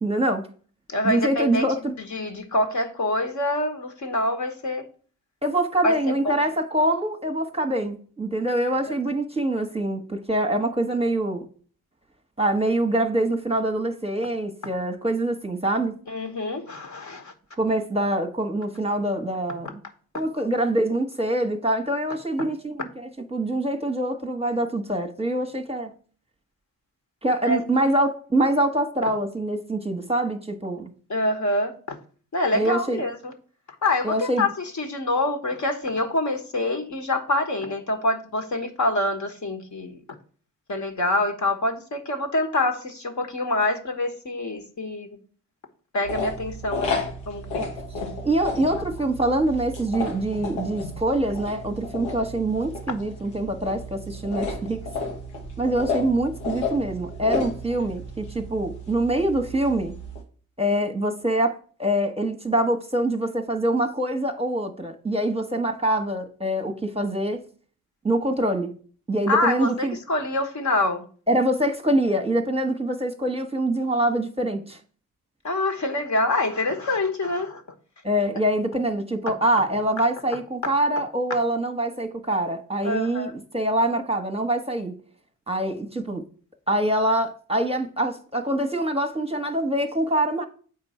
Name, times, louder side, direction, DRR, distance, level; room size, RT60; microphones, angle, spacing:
voice 1, 0.0-0.5 1.0-1.9 5.4-11.5 12.4-16.0 17.6-19.8 20.1-22.9 23.3-25.9 27.2-30.9 32.5-33.0 34.0-34.5 47.6-47.7 48.2-54.8 55.6-60.0 60.6-67.4 68.0-68.7 69.1-69.9 71.3-74.8 78.0-85.0 85.5-86.2 86.7-90.5, right 1 dB, 15° right, 1.1 m, -24 dB
voice 2, 0.9-1.7 2.1-4.8 5.8-6.5 8.8-8.9 16.1-17.3 27.4-27.6 31.1-32.0 32.3-33.3 33.8-40.0 40.7-45.1 45.9-48.1 48.7-48.8 50.8-50.9 69.3-71.0 75.4-77.6 82.8-83.3, left 2 dB, 40° left, 1.3 m, -26 dB
sound 1, 46.0-60.2, left 2 dB, 75° left, 1.3 m, -33 dB
7.8 x 4.5 x 4.3 m
hypercardioid pair, 45°, 45 cm